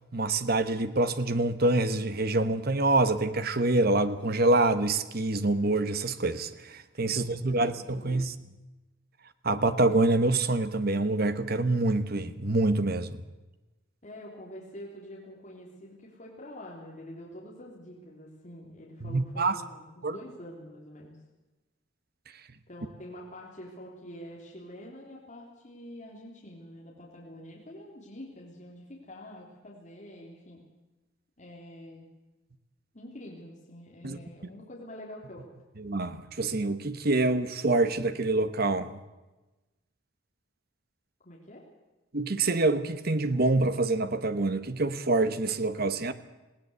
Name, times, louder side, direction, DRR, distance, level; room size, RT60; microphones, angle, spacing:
voice 1, 0.1-8.3 9.4-13.2 19.0-19.6 20.0-20.2 34.0-34.2 35.8-39.0 42.1-46.1, right 2 dB, 50° right, 11 dB, 1.2 m, -26 dB
voice 2, 7.0-8.3 14.0-21.2 22.7-30.6 31.4-32.0 32.9-35.5 41.2-41.6, left 1 dB, 35° left, -3 dB, 3.5 m, -46 dB
19.5 x 17.5 x 8.0 m, 1.1 s
head